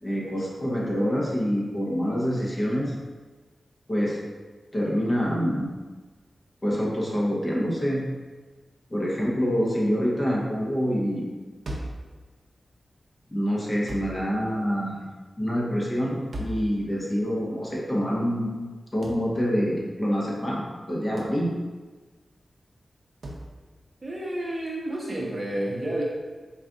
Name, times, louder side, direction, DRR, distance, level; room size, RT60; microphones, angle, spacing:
voice 1, 0.0-2.9 3.9-4.2 4.7-5.7 6.6-8.0 8.9-11.3 13.3-15.1 15.4-18.5 18.9-20.6 20.9-21.5, equal, 25° left, -4 dB, 0.8 m, -26 dB
sound 1, 11.7-12.1 13.9-14.2 16.3-16.7 19.0-19.3 21.2-21.4 23.2-23.5, right 1 dB, 70° right, 0.5 m, -35 dB
voice 2, 24.0-26.0, right 1 dB, 35° right, -4 dB, 0.8 m, -30 dB
4.1 x 2.3 x 3.7 m, 1.3 s
wide cardioid pair, 110°, 0 cm